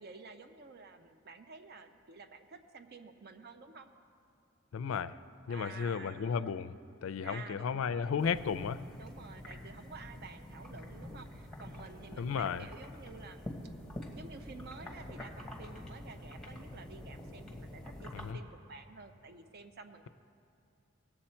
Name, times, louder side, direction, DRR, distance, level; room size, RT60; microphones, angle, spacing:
voice 1, 0.0-3.9 5.5-6.6 7.0-8.1 9.0-13.7 14.1-20.1, right 4 dB, 50° right, 7 dB, 0.6 m, -51 dB
voice 2, 4.7-5.2 5.5-6.7 7.0-8.8 12.2-12.7 18.1-18.4, left 6 dB, 80° left, 13 dB, 0.4 m, -34 dB
sound 1, 8.2-18.3, left 1 dB, ahead, 1.1 m, -47 dB
18.5 x 7.5 x 4.4 m, 2.7 s
head